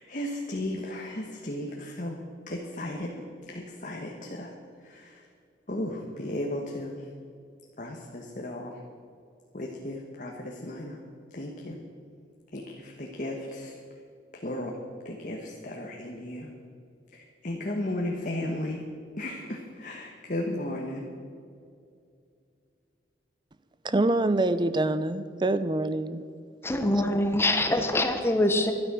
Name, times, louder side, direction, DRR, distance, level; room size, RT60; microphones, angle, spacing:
voice 1, 0.0-2.1 2.5-3.1 3.5-4.5 4.8-5.2 5.7-7.1 7.8-8.8 9.5-11.0 11.3-11.8 12.5-13.8 14.4-14.8 15.0-16.5 17.1-18.8 19.2-21.0, left 1 dB, 45° left, 1.3 m, -35 dB
voice 2, 23.8-26.2, right 2 dB, 25° right, 0.5 m, -25 dB
voice 3, 26.6-28.7, left 1 dB, 15° left, 0.9 m, -24 dB
12.5 x 12.0 x 6.2 m
head